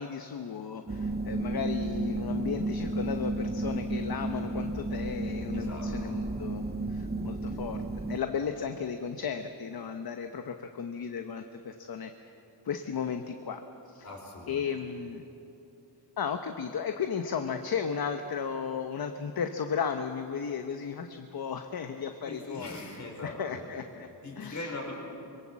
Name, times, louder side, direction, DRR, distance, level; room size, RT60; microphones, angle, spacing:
voice 1, 0.0-12.1 12.6-14.1 14.5-15.3 16.2-22.8 23.2-24.1 24.4-24.7, left 6 dB, 55° left, 6 dB, 1.0 m, -35 dB
sound 1, 0.9-8.2, right 2 dB, 20° right, 0.9 m, -33 dB
voice 2, 5.5-6.2 14.0-14.6 22.2-23.8 24.2-24.9, left 2 dB, 40° left, 0 dB, 4.9 m, -41 dB
24.5 x 21.5 x 7.5 m, 2.9 s
wide cardioid pair, 150°, 43 cm